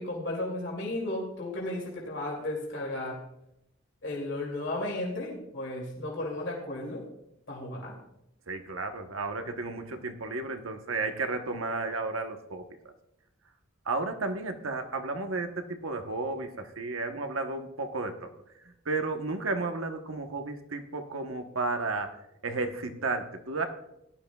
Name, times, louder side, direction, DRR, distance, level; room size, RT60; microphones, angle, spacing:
voice 1, 0.0-3.2 4.0-7.0 7.5-8.0, left 1 dB, 60° left, -3 dB, 2.6 m, -34 dB
voice 2, 8.5-12.7 13.9-18.3 18.8-22.1 22.4-23.7, right 3 dB, 80° right, 6 dB, 1.1 m, -33 dB
17.5 x 11.5 x 2.3 m, 0.84 s
head